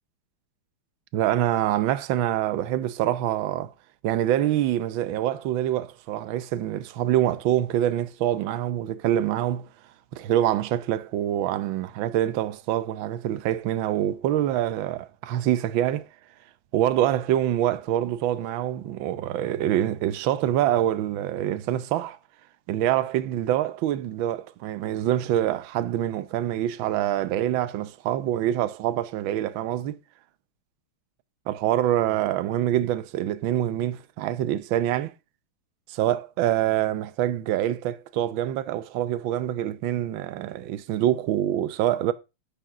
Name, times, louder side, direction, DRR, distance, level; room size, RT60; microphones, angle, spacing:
voice 1, 1.1-3.7 4.0-9.7 10.1-16.1 16.7-22.2 22.7-30.0 31.5-35.1 35.9-42.1, right 12 dB, 75° right, 1.5 m, -25 dB
13.0 x 5.2 x 5.9 m
omnidirectional pair, 2.2 m